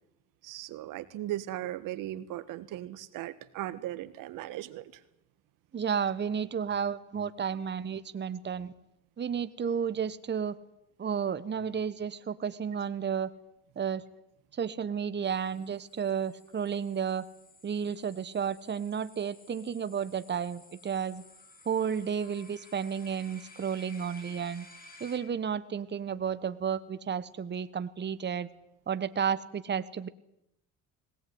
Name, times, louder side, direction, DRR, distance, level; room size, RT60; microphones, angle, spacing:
voice 1, 0.4-4.9, right 14 dB, 75° right, 14 dB, 1.6 m, -37 dB
voice 2, 5.7-8.7 9.2-10.5 11.0-13.3 13.8-14.0 14.6-17.3 17.6-21.2 21.6-24.7 25.0-28.5 28.9-30.1, right 7 dB, 35° right, 14 dB, 1.3 m, -32 dB
sound 1, 15.2-25.2, left 2 dB, 25° left, 4.8 m, -54 dB
21.0 x 18.0 x 9.6 m, 0.84 s
supercardioid pair, 80°, 33 cm